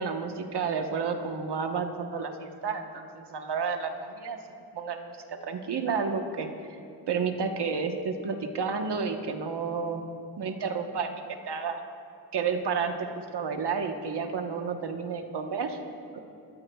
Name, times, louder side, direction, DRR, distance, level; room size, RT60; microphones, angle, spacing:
voice 1, 0.0-4.4 4.7-6.5 7.1-10.0 10.4-11.1 11.5-11.8 12.3-13.1 13.3-15.8 16.1-16.2, right 5 dB, 75° right, 4 dB, 1.2 m, -31 dB
22.0 x 13.0 x 2.3 m, 2.5 s
wide cardioid pair, 85°, 41 cm